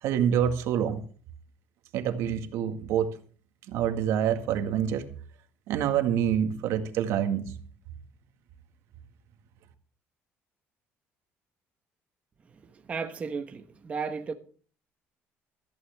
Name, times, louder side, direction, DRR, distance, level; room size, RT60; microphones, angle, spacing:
voice 1, 0.0-1.0 1.9-3.2 3.7-5.1 5.7-7.5, right 9 dB, 75° right, 1.9 m, -26 dB
voice 2, 12.4-14.3, right 5 dB, 30° right, 1.3 m, -35 dB
16.0 x 14.0 x 3.6 m
cardioid pair, 150°, 5 cm